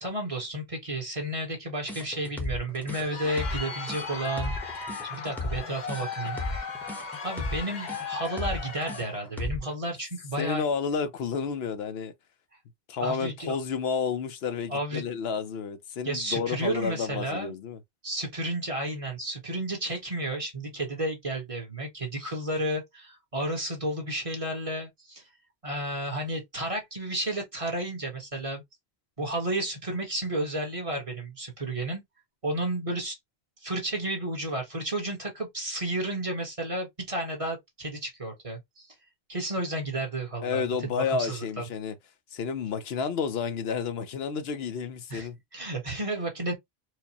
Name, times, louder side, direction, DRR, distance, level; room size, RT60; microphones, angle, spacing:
voice 1, 0.0-4.5 5.1-6.4 7.2-10.6 13.0-13.6 14.7-15.0 16.0-17.5 18.0-25.2 25.6-28.6 29.2-32.0 32.4-33.2 33.6-38.9 39.3-41.6 45.1-46.5, right 1 dB, 35° right, 1.3 m, -32 dB
sound 1, 1.9-9.7, left 2 dB, ahead, 0.8 m, -35 dB
Crowd, 2.7-9.3, left 5 dB, 50° left, 0.9 m, -37 dB
voice 2, 10.4-12.1 12.9-17.8 40.4-41.9 42.3-45.4, left 5 dB, 75° left, 0.9 m, -30 dB
4.5 x 2.2 x 2.8 m
omnidirectional pair, 1.1 m